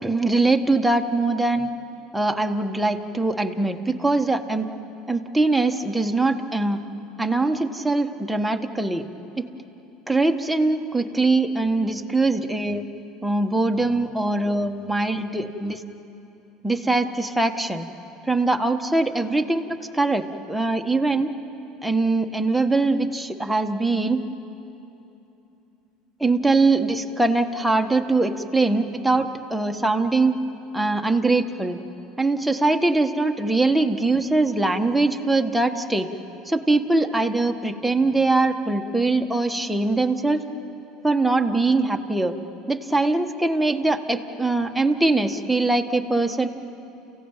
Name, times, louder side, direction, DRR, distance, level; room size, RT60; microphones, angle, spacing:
voice 1, 0.0-1.7 2.1-4.7 5.1-6.8 7.2-9.0 9.4-9.5 10.1-12.8 13.2-15.8 16.6-17.8 18.3-19.6 19.9-21.3 21.8-24.2 26.2-30.3 30.7-31.8 32.2-36.1 36.5-40.4 41.0-42.3 42.7-46.5, right 2 dB, 5° right, 4 dB, 1.5 m, -22 dB
29.5 x 16.0 x 9.0 m, 3.0 s
hypercardioid pair, 85°, 0 cm